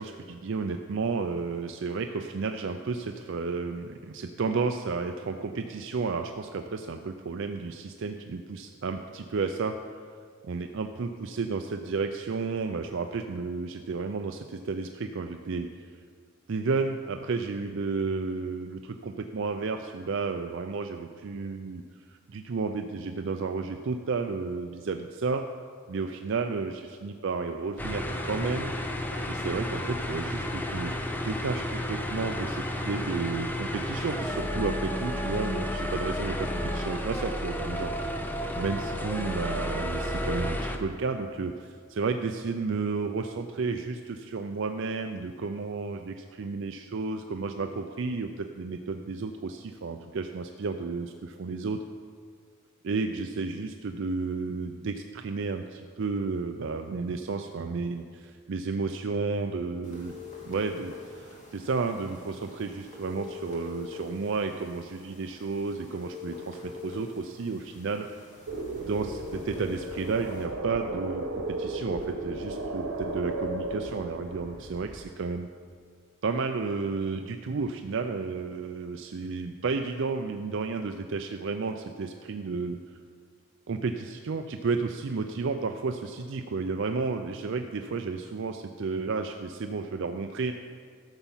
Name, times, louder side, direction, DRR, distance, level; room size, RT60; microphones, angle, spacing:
voice 1, 0.0-9.7 10.5-15.7 16.5-21.8 22.1-25.4 25.9-28.7 29.3-30.9 31.2-38.3 38.5-51.8 52.8-60.1 60.4-68.1 68.8-75.5 76.2-82.8 83.7-90.5, right 4 dB, 60° right, 6 dB, 0.4 m, -32 dB
sound 1, 27.8-40.8, left 1 dB, 10° left, 0.6 m, -32 dB
sound 2, 59.8-70.4, left 5 dB, 35° left, 2.2 m, -45 dB
sound 3, 68.5-75.1, right 2 dB, 80° right, 1.4 m, -35 dB
13.0 x 7.1 x 5.6 m, 2.1 s
head